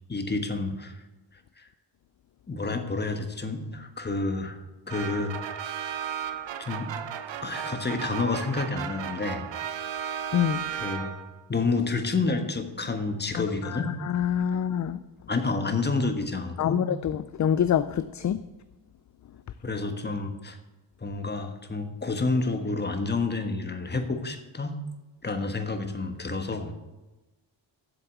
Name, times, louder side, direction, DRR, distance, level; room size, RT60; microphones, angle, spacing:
voice 1, 0.1-1.0 1.6-1.7 2.5-4.6 4.9-5.6 6.6-6.9 7.4-9.5 10.7-11.2 11.5-13.9 14.5-14.6 15.3-16.8 19.6-20.6 21.0-24.8 25.2-26.7, left 3 dB, 20° left, 1.3 m, -29 dB
sound 1, 4.9-11.4, right 9 dB, 75° right, 0.8 m, -35 dB
voice 2, 13.7-15.0 16.6-18.4, left 9 dB, 40° left, 0.4 m, -26 dB
8.2 x 7.0 x 8.3 m
cardioid pair, 100°, 45 cm